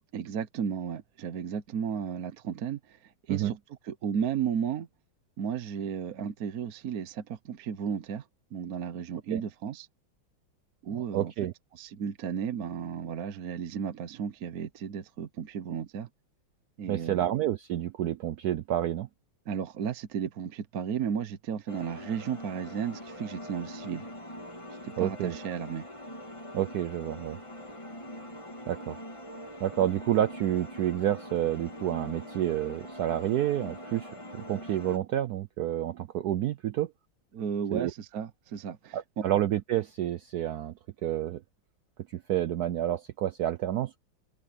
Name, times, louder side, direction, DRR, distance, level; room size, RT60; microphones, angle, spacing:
voice 1, 0.1-3.6 3.8-4.9 5.4-8.3 8.5-9.9 10.8-11.3 11.7-16.1 16.8-17.2 19.5-24.1 24.8-25.9 37.3-39.2, right 7 dB, 55° right, 1.2 m, -34 dB
voice 2, 10.9-11.5 16.9-19.1 25.0-25.4 26.5-27.4 28.7-29.0 29.6-36.9 37.7-37.9 38.9-40.7 41.0-41.4 42.1-44.0, right 12 dB, 75° right, 0.8 m, -29 dB
sound 1, 21.7-35.0, equal, 15° left, 1.9 m, -43 dB
omnidirectional pair, 2.3 m